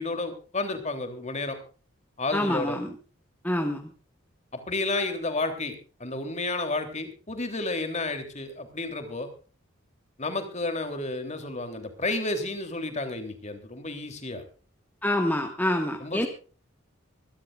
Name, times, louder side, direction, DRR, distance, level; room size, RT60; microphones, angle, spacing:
voice 1, 0.0-1.6 2.2-2.8 4.5-9.3 10.2-14.4 16.0-16.3, left 2 dB, 35° left, 7 dB, 3.3 m, -31 dB
voice 2, 2.3-2.9 3.4-3.9 15.0-16.3, left 1 dB, 10° left, 3 dB, 1.7 m, -26 dB
25.0 x 13.0 x 2.5 m, 0.38 s
head